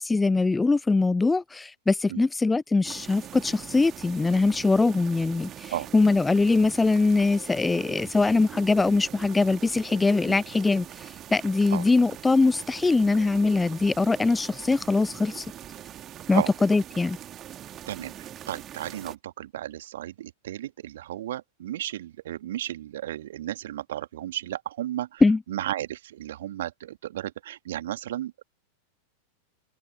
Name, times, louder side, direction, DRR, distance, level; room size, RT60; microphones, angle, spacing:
voice 1, 0.0-15.5 16.3-17.2 25.2-25.4, left 3 dB, 10° left, 0.4 m, -22 dB
sound 1, 2.8-19.1, right 11 dB, 30° right, 2.2 m, -43 dB
voice 2, 17.9-25.2 25.5-28.4, right 13 dB, 60° right, 2.3 m, -34 dB
open air
figure-of-eight pair, 90°, 0 cm